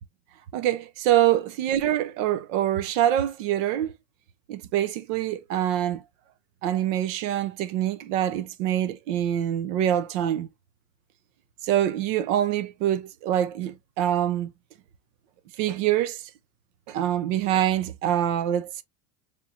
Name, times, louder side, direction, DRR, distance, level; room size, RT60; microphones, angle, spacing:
voice 1, 0.5-3.9 4.5-6.0 6.6-10.5 11.6-14.5 15.6-16.3 16.9-18.8, right 11 dB, 75° right, 0.8 m, -25 dB
4.3 x 3.4 x 2.5 m
cardioid pair, 170°, 39 cm